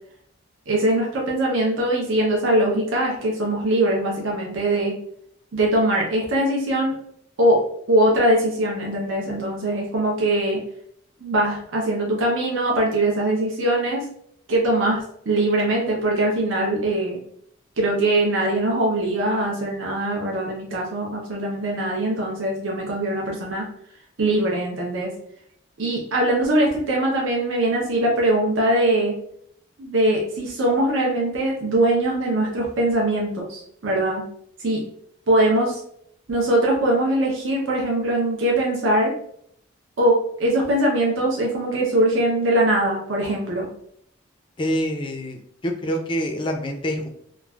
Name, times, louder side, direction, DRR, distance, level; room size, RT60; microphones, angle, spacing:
voice 1, 0.7-4.9 5.5-6.9 7.4-7.6 7.9-10.6 11.2-14.0 14.5-17.2 17.8-23.7 24.2-25.1 25.8-29.1 29.8-34.2 34.6-34.8 35.3-35.8 36.3-39.1 40.0-43.7, right 1 dB, 70° right, -2 dB, 0.7 m, -21 dB
voice 2, 44.6-47.1, equal, 25° left, 4 dB, 0.3 m, -26 dB
3.0 x 2.3 x 2.3 m, 0.67 s
head